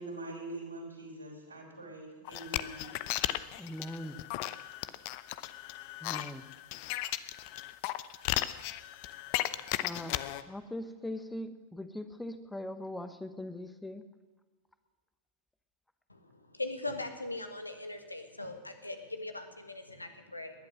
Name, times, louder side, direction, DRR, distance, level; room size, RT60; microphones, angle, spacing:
voice 1, 0.0-2.9, right 2 dB, 85° right, -2 dB, 4.8 m, -43 dB
sound 1, 2.2-10.4, left 15 dB, 45° left, 0.6 m, -36 dB
voice 2, 3.6-4.2 6.0-6.5 9.8-10.1 10.5-14.0, left 1 dB, 5° left, 10 dB, 1.2 m, -40 dB
voice 3, 16.6-20.5, left 2 dB, 85° left, 7 dB, 1.6 m, -40 dB
20.0 x 11.5 x 6.4 m, 1.4 s
figure-of-eight pair, 90°, 0 cm